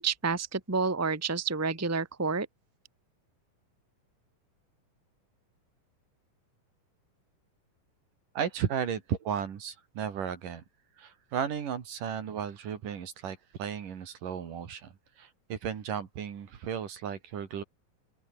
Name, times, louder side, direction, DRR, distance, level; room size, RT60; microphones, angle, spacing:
voice 1, 0.0-2.5, right 4 dB, 5° right, 1.6 m, -29 dB
voice 2, 8.4-10.6 11.0-14.9 15.2-17.6, right 8 dB, 70° right, 4.1 m, -34 dB
omnidirectional pair, 4.0 m